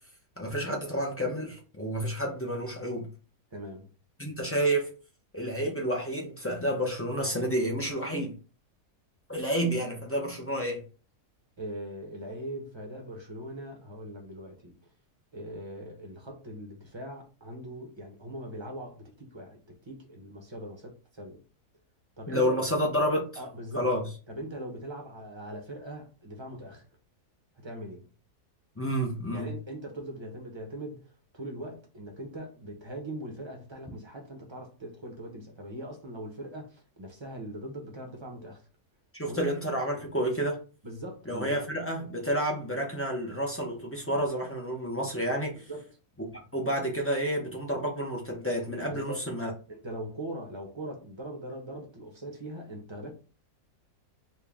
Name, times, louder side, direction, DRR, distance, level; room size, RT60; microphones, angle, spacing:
voice 1, 0.4-3.1 4.2-4.9 5.3-8.4 9.3-10.8 22.3-23.3 23.7-24.1 28.8-29.5 39.1-40.6 41.3-45.6 46.5-49.5, equal, 20° left, 0.4 m, -30 dB
voice 2, 3.5-3.9 11.6-14.7 15.3-21.4 22.2-22.6 23.4-23.9 24.3-26.9 27.6-28.1 29.3-38.6 39.2-39.4 40.8-41.6 45.7-45.9 48.9-49.2 49.7-53.1, right 1 dB, 25° right, 0.7 m, -41 dB
4.4 x 2.2 x 3.5 m
omnidirectional pair, 1.7 m